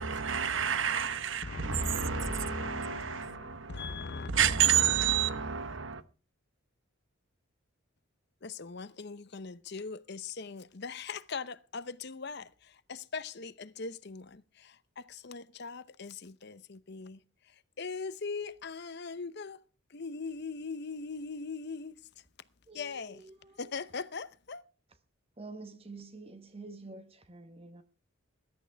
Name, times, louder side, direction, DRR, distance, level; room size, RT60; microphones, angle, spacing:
voice 1, 0.0-4.0 4.3-6.0, right 8 dB, 60° right, 1.1 m, -29 dB
voice 2, 1.4-4.3 8.4-17.2 17.8-19.6 19.9-22.0 22.7-23.2 23.6-24.6, left 4 dB, 50° left, 0.7 m, -40 dB
voice 3, 22.7-23.8 25.4-27.8, right 2 dB, 25° right, 1.1 m, -48 dB
20.5 x 11.5 x 3.4 m
head